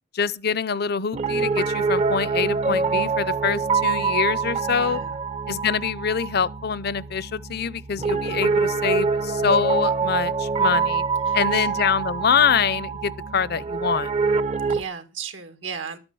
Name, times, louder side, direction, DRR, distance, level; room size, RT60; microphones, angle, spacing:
voice 1, 0.1-5.0 5.5-11.0 11.3-14.1, left 6 dB, 60° left, 0.6 m, -25 dB
Piano, 1.1-14.8, right 4 dB, 35° right, 0.6 m, -25 dB
voice 2, 4.8-5.2 11.2-11.7 14.6-16.0, right 6 dB, 90° right, 2.0 m, -36 dB
12.5 x 8.8 x 6.1 m
head